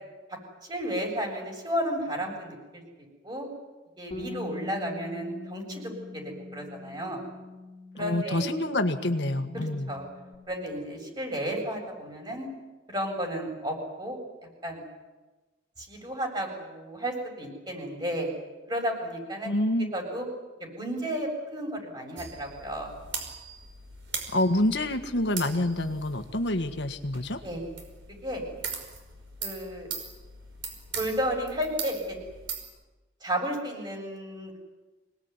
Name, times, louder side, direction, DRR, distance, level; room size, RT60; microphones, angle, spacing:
voice 1, 0.7-2.8 3.2-3.5 4.0-7.2 7.9-8.5 9.5-10.1 10.5-12.5 12.9-14.2 14.6-14.8 15.8-18.3 18.7-19.5 19.9-20.3 20.6-22.9 27.4-27.6 28.2-28.4 29.4-29.9 31.0-32.2 33.2-34.6, equal, 25° right, 1 dB, 7.6 m, -33 dB
Bass guitar, 4.1-10.4, left 2 dB, 25° left, 4.2 m, -43 dB
voice 2, 8.0-9.9 19.4-19.9 24.3-27.4, left 1 dB, 70° left, 7 dB, 1.7 m, -27 dB
sound 1, 22.2-32.6, right 5 dB, 90° right, 5.4 m, -40 dB
26.5 x 19.5 x 9.7 m, 1.2 s
head